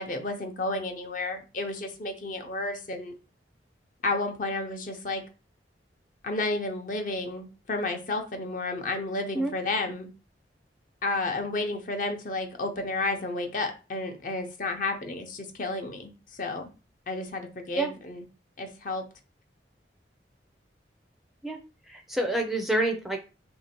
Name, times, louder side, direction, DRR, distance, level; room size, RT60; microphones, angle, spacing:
voice 1, 0.0-3.1 4.0-5.2 6.2-10.1 11.0-16.1 16.4-16.7 17.1-18.2 18.6-19.0, left 2 dB, 50° left, 4 dB, 0.7 m, -31 dB
voice 2, 21.9-23.2, right 1 dB, ahead, 3 dB, 0.4 m, -28 dB
2.9 x 2.7 x 4.4 m, 0.32 s
head